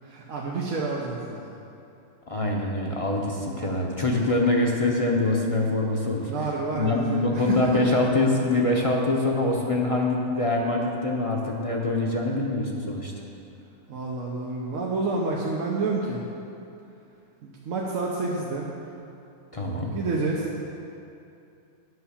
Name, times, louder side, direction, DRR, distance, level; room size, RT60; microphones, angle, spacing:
voice 1, 0.0-1.6 6.3-7.8 13.9-16.2 17.4-18.7 19.9-20.5, right 3 dB, 75° right, -3 dB, 1.3 m, -29 dB
voice 2, 2.3-6.3 6.7-13.1 19.5-20.0, left 2 dB, 30° left, -1 dB, 0.8 m, -24 dB
9.7 x 5.7 x 7.2 m, 2.7 s
omnidirectional pair, 1.4 m